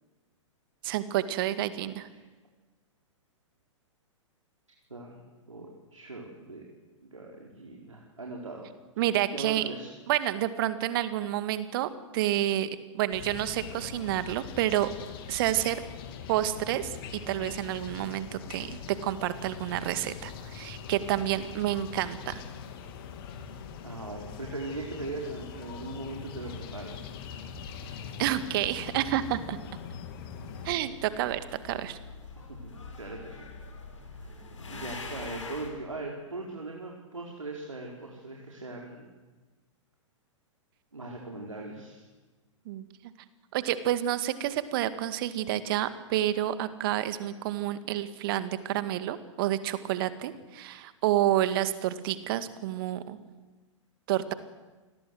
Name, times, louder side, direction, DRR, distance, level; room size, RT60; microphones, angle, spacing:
voice 1, 0.8-2.1 9.0-9.6 10.1-12.7 12.9-14.9 15.3-15.8 16.3-16.9 17.3-22.4 28.2-29.6 30.6-32.0 42.7-42.8 43.5-53.2 54.1-54.3, right 13 dB, 45° right, 12 dB, 2.0 m, -29 dB
voice 2, 4.9-5.2 5.5-6.6 7.0-8.7 9.3-9.9 23.8-27.0 32.4-33.5 34.2-34.4 34.7-39.1 40.9-42.1, right 2 dB, 80° right, -1 dB, 4.5 m, -40 dB
sound 1, 13.1-30.8, left 7 dB, 45° left, 3.4 m, -42 dB
sound 2, 30.4-35.7, left 3 dB, 70° left, 6.5 m, -44 dB
28.5 x 21.0 x 8.0 m, 1.2 s
figure-of-eight pair, 110°, 16 cm